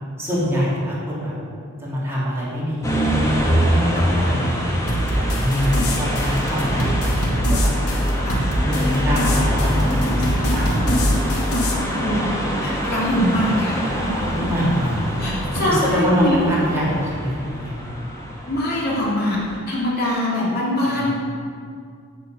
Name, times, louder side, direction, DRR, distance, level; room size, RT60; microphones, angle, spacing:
voice 1, 0.2-1.3 1.8-4.5 5.1-7.2 7.5-7.7 8.8-11.4 14.3-14.9 15.2-15.4 15.7-17.8 20.9-21.1, equal, 10° right, -8 dB, 3.0 m, -25 dB
sound 1, 2.8-19.6, equal, 15° left, 1.6 m, -24 dB
sound 2, 4.9-11.7, equal, 85° left, 2.0 m, -23 dB
voice 2, 11.9-12.3 12.6-13.9 15.2-16.4 18.5-19.4 19.7-21.1, left 1 dB, 45° left, -6 dB, 2.9 m, -23 dB
Walk footsteps, 12.6-17.0, left 1 dB, 80° right, 2.2 m, -34 dB
8.3 x 8.2 x 7.8 m, 2.3 s
head